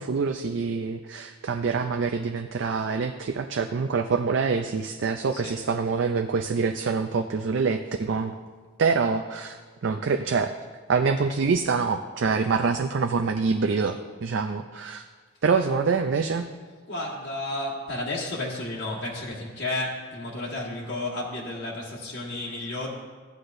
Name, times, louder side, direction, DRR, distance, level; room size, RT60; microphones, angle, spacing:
voice 1, 0.0-8.3 8.8-10.5 10.9-15.0 15.4-16.5, right 5 dB, 60° right, 7 dB, 0.4 m, -25 dB
voice 2, 16.9-22.9, left 2 dB, 65° left, -5 dB, 1.5 m, -32 dB
14.5 x 9.6 x 2.6 m, 1.5 s
head